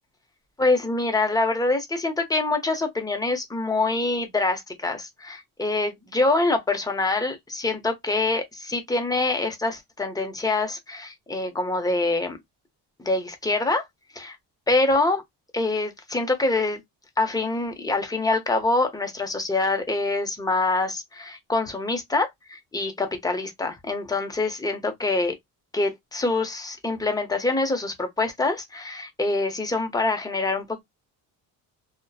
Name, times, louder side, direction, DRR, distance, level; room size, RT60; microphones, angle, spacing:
voice 1, 0.6-12.4 13.0-13.9 14.1-14.3 14.7-15.2 15.5-16.8 17.2-25.3 25.7-30.8, left 2 dB, 10° left, 0.6 m, -25 dB
2.7 x 2.1 x 2.2 m
cardioid pair, 110°, 39 cm